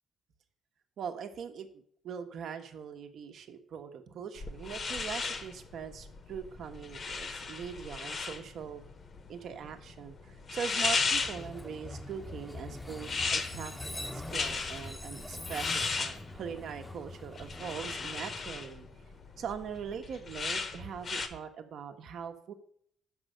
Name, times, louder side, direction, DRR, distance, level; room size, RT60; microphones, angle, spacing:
voice 1, 1.0-8.8 9.3-10.1 10.5-18.9 19.4-22.5, right 7 dB, 70° right, 6 dB, 1.0 m, -41 dB
sound 1, 4.4-21.3, left 4 dB, 45° left, 0.9 m, -36 dB
Train, 11.0-19.0, left 2 dB, 10° left, 0.7 m, -44 dB
6.3 x 5.5 x 6.6 m, 0.65 s
cardioid pair, 90°, 0 cm